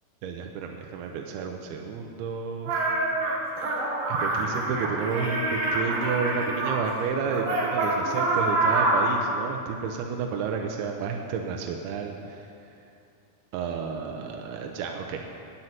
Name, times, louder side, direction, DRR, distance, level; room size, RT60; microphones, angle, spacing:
voice 1, 0.2-2.9 4.1-12.4 13.5-15.3, right 5 dB, 80° right, 2 dB, 2.6 m, -31 dB
sound 1, 2.7-6.8 7.3-9.1, right 2 dB, 65° right, 3.3 m, -26 dB
9.9 x 8.0 x 9.2 m, 2.6 s
omnidirectional pair, 4.7 m